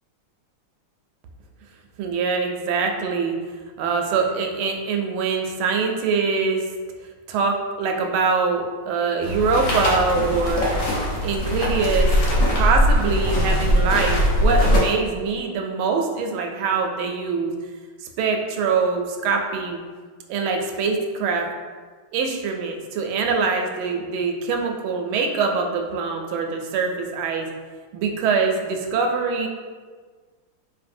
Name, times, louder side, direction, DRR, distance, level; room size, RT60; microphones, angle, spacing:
voice 1, 2.0-3.4 3.8-6.6 7.3-10.7 11.2-17.5 18.2-19.8 20.3-21.5 22.1-27.5 27.9-29.5, right 4 dB, 80° right, 3 dB, 1.4 m, -23 dB
sound 1, 9.2-14.8, equal, 65° left, 1.3 m, -20 dB
4.2 x 3.3 x 2.6 m, 1.5 s
omnidirectional pair, 2.3 m